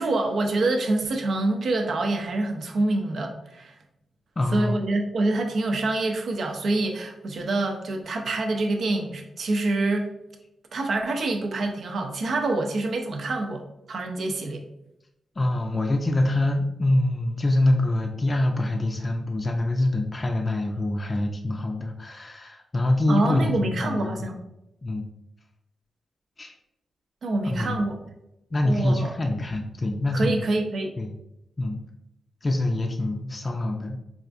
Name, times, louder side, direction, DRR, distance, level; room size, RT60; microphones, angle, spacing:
voice 1, 0.0-3.7 4.5-10.1 10.7-14.6 23.1-24.3 27.2-28.0 28.6-29.1 30.1-30.9, right 2 dB, 70° right, 3 dB, 0.5 m, -26 dB
voice 2, 4.4-4.8 15.4-24.1 24.8-25.1 26.4-26.5 27.4-27.8 28.5-30.4 31.0-31.2 31.6-31.8 32.4-34.0, left 1 dB, 35° left, 2 dB, 0.4 m, -25 dB
4.2 x 2.4 x 2.5 m, 0.86 s
cardioid pair, 55°, 0 cm